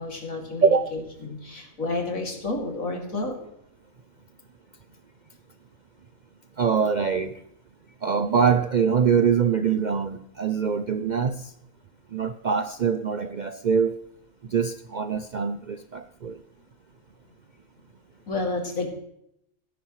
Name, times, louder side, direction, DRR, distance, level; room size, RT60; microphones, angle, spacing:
voice 1, 0.0-3.4 18.3-18.9, left 3 dB, 85° left, 3.0 m, -30 dB
voice 2, 6.6-7.4 8.0-11.5 12.1-14.0 14.5-16.4, right 6 dB, 60° right, 0.4 m, -23 dB
17.5 x 10.0 x 3.1 m
omnidirectional pair, 1.4 m